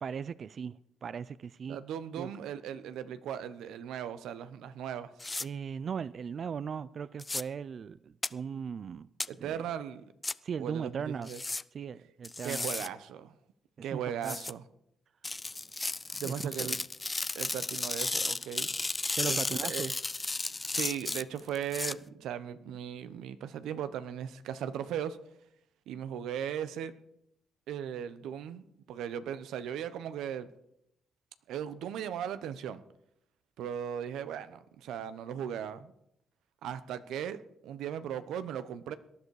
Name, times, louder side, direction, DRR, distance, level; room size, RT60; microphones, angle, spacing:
voice 1, 0.0-1.8 2.2-2.3 5.4-9.1 9.4-9.7 10.4-11.3 11.7-12.7 13.9-14.4 15.5-15.6 16.2-16.3 16.6-16.8 19.2-19.9 20.5-20.7, right 6 dB, 50° right, 0.4 m, -38 dB
voice 2, 1.7-5.1 9.3-10.0 10.6-11.4 12.4-13.3 13.8-14.6 16.1-16.8 17.3-18.7 19.2-19.8 20.7-25.2 25.9-26.9 27.7-30.5 31.5-32.8 33.6-35.9 36.6-39.0, right 9 dB, 85° right, 0.9 m, -37 dB
sound 1, 5.2-5.4 7.2-7.4 8.2-8.3 9.2-9.3 10.2-10.3 11.3-11.6 12.2-12.9 14.2-14.5 15.2-21.9, left 3 dB, 20° left, 0.4 m, -34 dB
18.5 x 11.0 x 4.8 m
cardioid pair, 90°, 0 cm